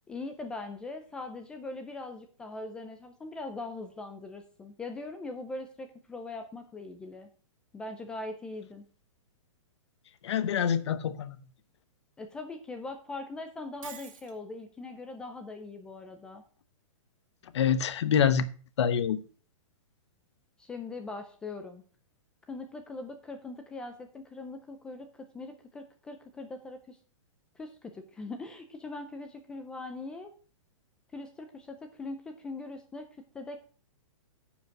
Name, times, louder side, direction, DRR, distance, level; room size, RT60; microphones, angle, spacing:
voice 1, 0.1-7.3 7.7-8.8 12.2-16.4 20.6-21.8 22.5-27.0 27.6-30.3 31.1-33.7, left 2 dB, 5° left, 7 dB, 0.3 m, -41 dB
voice 2, 10.2-11.4 17.5-18.5 18.8-19.2, left 8 dB, 55° left, 13 dB, 0.9 m, -26 dB
Shatter, 13.8-14.4, right 7 dB, 75° right, 2.2 m, -46 dB
9.7 x 5.2 x 6.3 m, 0.42 s
hypercardioid pair, 165°, 17 cm